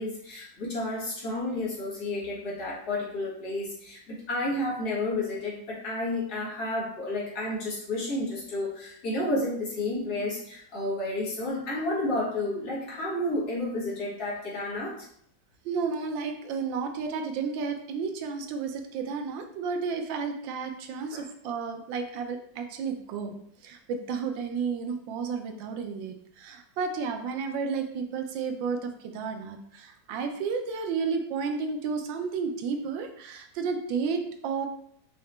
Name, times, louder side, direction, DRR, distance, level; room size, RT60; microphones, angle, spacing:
voice 1, 0.0-15.0 21.1-21.2, left 1 dB, 55° left, -6 dB, 1.9 m, -31 dB
voice 2, 15.6-23.3 23.6-34.7, right 5 dB, 90° right, 5 dB, 1.3 m, -32 dB
5.4 x 2.8 x 3.3 m, 0.67 s
omnidirectional pair, 2.0 m